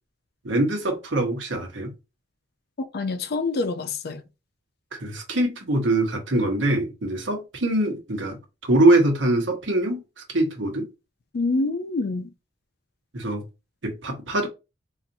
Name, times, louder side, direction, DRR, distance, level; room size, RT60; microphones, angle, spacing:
voice 1, 0.4-1.9 4.9-8.4 8.7-10.9 13.1-13.4 13.8-14.5, right 1 dB, 80° right, 1.1 m, -23 dB
voice 2, 2.9-4.2 11.3-12.3, left 3 dB, 55° left, 0.5 m, -26 dB
4.0 x 2.5 x 2.7 m
head